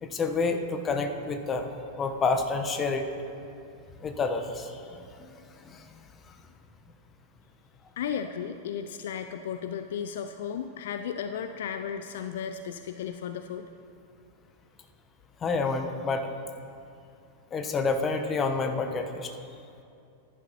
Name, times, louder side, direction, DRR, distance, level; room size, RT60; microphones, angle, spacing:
voice 1, 0.0-1.7 2.0-3.1 4.0-4.8 5.2-5.3 5.6-5.9 15.4-16.3 17.5-19.3, left 4 dB, 25° left, 6 dB, 0.9 m, -28 dB
voice 2, 8.0-13.7, left 8 dB, 60° left, 9 dB, 0.4 m, -34 dB
14.5 x 10.5 x 2.9 m, 2.6 s
figure-of-eight pair, 95°, 0 cm